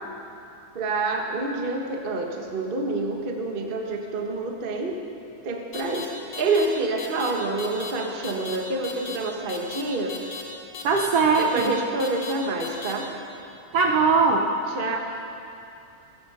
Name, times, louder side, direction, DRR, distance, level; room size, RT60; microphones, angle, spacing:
voice 1, 0.7-5.0 5.4-10.2 11.4-13.1 14.7-15.0, right 2 dB, 50° right, 1 dB, 0.6 m, -27 dB
sound 1, 5.7-6.1 6.3-6.7 7.0-7.3 7.6-7.9 8.2-8.6 8.8-9.2 9.5-9.8 10.1-10.4 10.7-11.1 11.4-11.7 12.0-12.3 12.6-12.9, left 5 dB, 55° left, 2.6 m, -36 dB
voice 2, 10.8-11.7 13.7-14.4, right 4 dB, 70° right, 2 dB, 1.4 m, -20 dB
16.5 x 14.0 x 5.6 m, 2.8 s
omnidirectional pair, 3.5 m